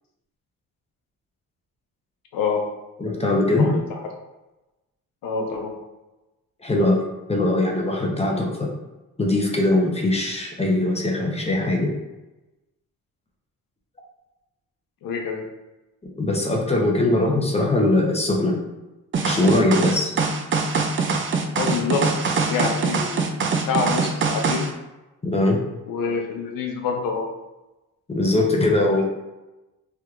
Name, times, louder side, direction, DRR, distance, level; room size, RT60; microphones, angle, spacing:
voice 1, 2.3-2.7 3.6-4.1 5.2-5.7 15.0-15.4 21.5-22.1 22.5-24.7 25.9-27.3 29.0-29.1, left 5 dB, 75° left, 2 dB, 0.7 m, -27 dB
voice 2, 3.0-3.7 6.6-8.7 9.2-11.9 16.2-18.6 19.2-20.1 25.2-25.6 28.1-29.0, left 2 dB, 20° left, 0 dB, 0.7 m, -21 dB
sound 1, 19.1-24.7, right 4 dB, 35° right, 0.4 m, -23 dB
3.3 x 2.8 x 2.4 m, 1.0 s
cardioid pair, 80°, 34 cm